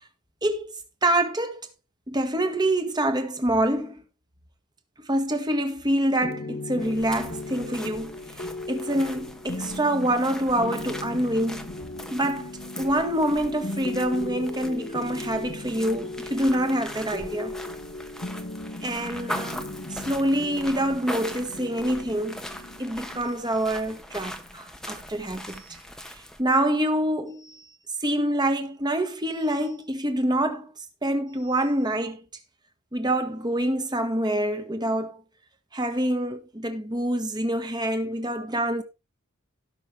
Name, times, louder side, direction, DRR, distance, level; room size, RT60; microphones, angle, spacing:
voice 1, 0.4-0.7 1.0-1.7 2.1-4.0 5.1-8.2 8.7-11.7 12.1-12.5 12.8-17.5 18.8-22.4 22.8-25.8 26.4-27.6 28.0-30.7 31.0-32.2 32.9-35.2 35.7-38.8, right 1 dB, 20° right, 1.7 m, -26 dB
sound 1, 6.2-25.8, left 2 dB, 45° left, 1.3 m, -37 dB
sound 2, 6.8-26.4, equal, 5° left, 1.1 m, -41 dB
17.5 x 6.1 x 3.4 m
head